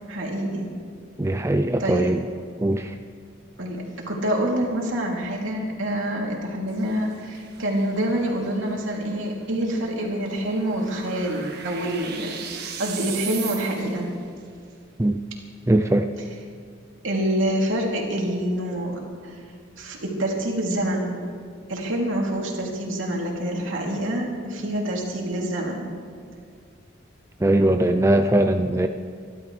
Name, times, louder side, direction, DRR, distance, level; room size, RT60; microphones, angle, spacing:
voice 1, 0.1-0.7 1.8-2.1 3.6-14.1 17.0-19.4 19.8-21.2 21.7-25.9, right 1 dB, 75° right, -2 dB, 3.0 m, -26 dB
voice 2, 1.2-2.2 2.6-2.9 15.0-15.2 15.7-16.1 27.4-28.9, right 1 dB, 15° right, 6 dB, 0.4 m, -20 dB
sound 1, 6.7-14.1, right 7 dB, 55° right, 1.6 m, -39 dB
27.0 x 12.5 x 3.3 m, 2.2 s
head